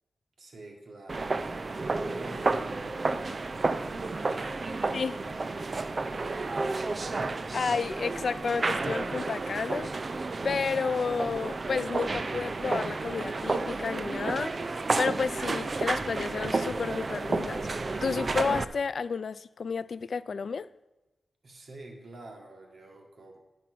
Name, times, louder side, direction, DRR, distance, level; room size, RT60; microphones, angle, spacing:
voice 1, 0.4-5.3 5.9-7.3 21.4-23.4, right 2 dB, 65° right, 1.8 m, -48 dB
sound 1, 1.1-18.6, right 3 dB, 45° right, 0.5 m, -31 dB
voice 2, 7.5-9.9 10.4-14.6 15.0-17.7 18.0-20.7, left 5 dB, 70° left, 0.3 m, -31 dB
11.0 x 6.0 x 6.1 m
wide cardioid pair, 105°, 0 cm